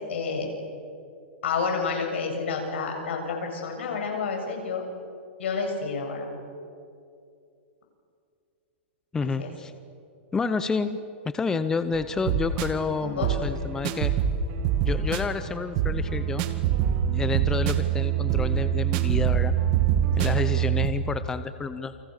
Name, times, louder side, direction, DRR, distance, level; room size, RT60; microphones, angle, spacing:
voice 1, 0.1-0.5 1.4-4.8 5.4-6.3 9.2-9.5 13.0-13.3 20.2-20.4, left 5 dB, 80° left, 2 dB, 7.5 m, -29 dB
voice 2, 9.1-9.7 10.3-11.0 11.2-14.1 14.8-16.4 17.1-19.5 20.2-21.9, left 4 dB, 10° left, 11 dB, 0.7 m, -29 dB
sound 1, 11.9-20.9, right 10 dB, 40° right, 1.9 m, -25 dB
28.5 x 27.5 x 6.6 m, 2.4 s
supercardioid pair, 160°, 6 cm